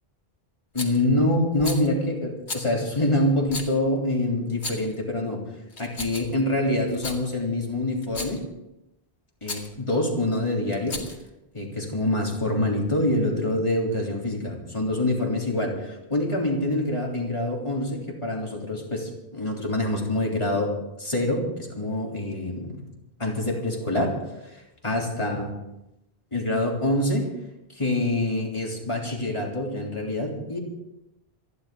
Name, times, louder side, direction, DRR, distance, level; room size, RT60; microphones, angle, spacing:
voice 1, 0.7-5.4 5.8-8.4 9.4-11.0 11.5-22.8 23.2-24.1 24.4-25.5 26.3-27.3 27.7-30.6, left 1 dB, 25° left, -2 dB, 3.5 m, -26 dB
Rattle, 0.8-1.0 1.6-1.9 2.5-2.7 3.5-3.7 4.5-5.0 5.7-6.4 6.9-7.2 8.0-8.4 9.4-9.7 10.7-11.3, left 3 dB, 75° left, 2.5 m, -34 dB
28.0 x 11.5 x 3.9 m, 0.91 s
omnidirectional pair, 1.1 m